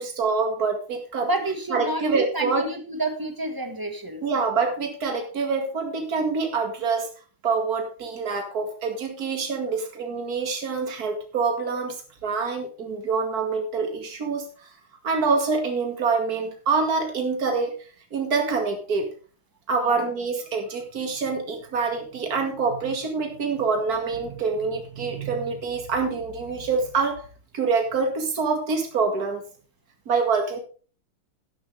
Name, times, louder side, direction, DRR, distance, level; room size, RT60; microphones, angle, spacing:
voice 1, 0.0-1.3 1.7-2.7 4.2-7.1 7.4-14.7 15.0-17.7 18.1-19.1 19.7-27.2 27.5-29.4 30.1-30.6, right 4 dB, 45° right, 4 dB, 2.5 m, -26 dB
voice 2, 1.2-4.2 19.8-20.0, right 2 dB, 10° right, 6 dB, 1.3 m, -29 dB
11.5 x 11.5 x 3.4 m, 0.38 s
omnidirectional pair, 2.2 m